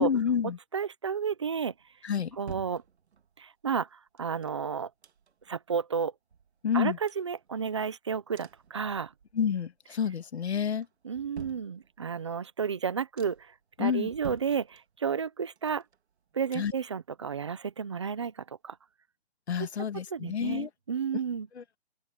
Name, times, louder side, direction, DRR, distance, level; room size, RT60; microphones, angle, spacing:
voice 1, 0.0-0.6 2.0-2.4 6.6-7.0 9.3-10.9 13.8-14.1 16.5-16.7 19.5-20.7 21.6-21.8, left 7 dB, 85° left, 1.7 m, -29 dB
voice 2, 0.7-1.7 2.4-2.8 3.4-4.9 5.5-6.1 6.7-9.1 11.0-15.8 16.3-18.8 20.1-21.5, right 6 dB, 25° right, 0.7 m, -32 dB
sound 1, 1.7-3.5 4.2-5.6 5.9-6.0 6.3-7.9 8.3-9.5 9.8-10.3 10.8-12.3 12.7-12.8 13.2-13.6 14.1-15.3 15.6-17.4 17.7-17.8, right 6 dB, 85° right, 2.0 m, -49 dB
open air
hypercardioid pair, 175°, 32 cm